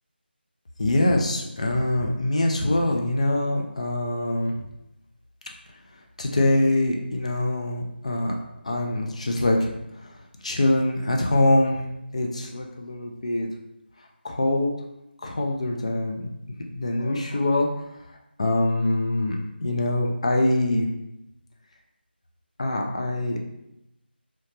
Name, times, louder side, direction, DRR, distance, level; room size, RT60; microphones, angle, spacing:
voice 1, 0.8-4.5 6.2-8.4 8.6-10.1 10.4-11.8 12.1-13.5 14.2-14.7 15.2-16.3 16.7-17.7 18.4-19.4 19.6-20.9 22.6-23.5, left 1 dB, 35° left, 1 dB, 0.4 m, -24 dB
2.8 x 2.0 x 3.1 m, 0.87 s
figure-of-eight pair, 170°, 6 cm